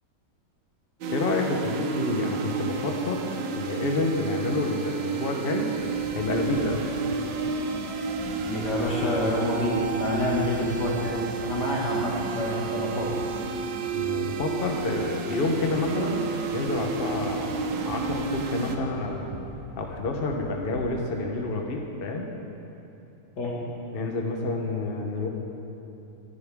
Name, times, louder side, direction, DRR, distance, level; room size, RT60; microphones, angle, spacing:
sound 1, 1.0-18.8, right 4 dB, 90° right, 1.5 m, -31 dB
voice 1, 1.1-3.3 3.5-5.7 6.1-6.9 13.9-16.3 16.5-17.6 17.9-19.2 19.8-22.3 23.9-25.3, left 3 dB, 40° left, 1 dB, 1.1 m, -28 dB
sound 2, 5.8-21.3, right 2 dB, 35° right, 0.4 m, -45 dB
voice 2, 8.5-13.1 23.4-23.6, left 1 dB, 70° left, -4 dB, 2.7 m, -28 dB
19.5 x 11.0 x 3.6 m, 2.9 s
omnidirectional pair, 1.9 m